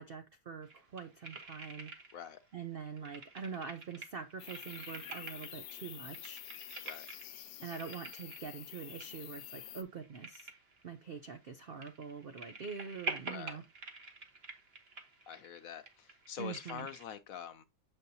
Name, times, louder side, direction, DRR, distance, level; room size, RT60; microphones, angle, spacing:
voice 1, 0.0-1.9 2.5-6.4 7.6-10.5 10.8-13.6 16.4-16.9, right 6 dB, 70° right, 0.5 m, -44 dB
sound 1, 0.6-2.4 2.6-17.0, right 3 dB, 40° right, 1.3 m, -47 dB
sound 2, 4.4-9.8, left 12 dB, 80° left, 1.2 m, -48 dB
voice 2, 13.3-13.6 15.3-17.6, left 8 dB, 65° left, 1.0 m, -45 dB
7.4 x 5.4 x 2.7 m
omnidirectional pair, 1.8 m